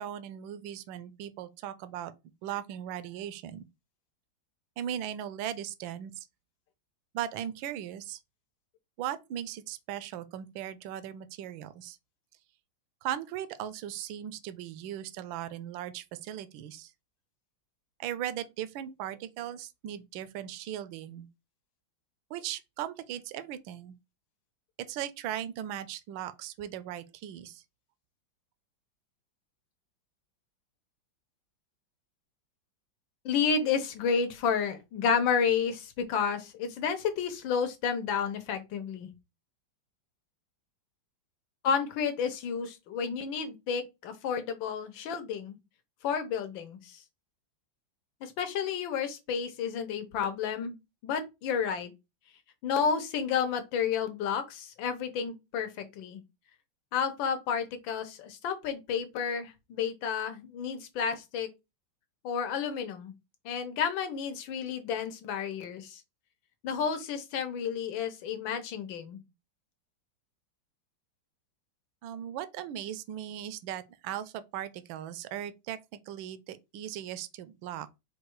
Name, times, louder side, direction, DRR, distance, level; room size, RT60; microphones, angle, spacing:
voice 1, 0.0-2.1 2.4-3.6 4.8-6.3 7.1-8.2 9.0-12.0 13.0-16.9 18.0-21.3 22.3-23.9 24.8-27.6 72.0-78.1, right 11 dB, 80° right, 1.3 m, -38 dB
voice 2, 33.2-39.1 41.6-45.6 46.0-47.0 48.2-50.7 51.0-51.9 52.6-56.2 56.9-61.5 62.2-63.1 63.4-66.0 66.6-69.2, left 6 dB, 75° left, 1.6 m, -31 dB
4.7 x 2.4 x 4.5 m
omnidirectional pair, 2.2 m